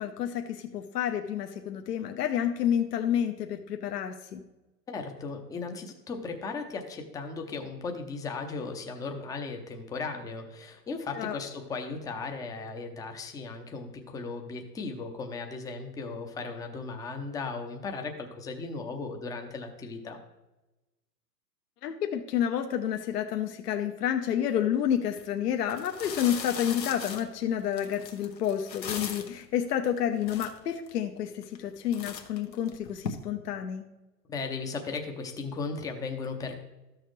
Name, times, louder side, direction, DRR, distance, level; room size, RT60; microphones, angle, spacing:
voice 1, 0.0-4.4 11.1-11.4 21.8-33.9, left 9 dB, 70° left, 6 dB, 0.9 m, -29 dB
voice 2, 4.9-20.2 34.3-36.6, left 4 dB, 5° left, 4 dB, 0.6 m, -36 dB
sound 1, 25.1-25.2 25.7-29.4 30.0-30.1 30.2-30.9 31.4-31.7 31.9-33.1, left 7 dB, 85° left, 1.2 m, -39 dB
13.0 x 6.5 x 3.1 m, 1.0 s
hypercardioid pair, 110°, 49 cm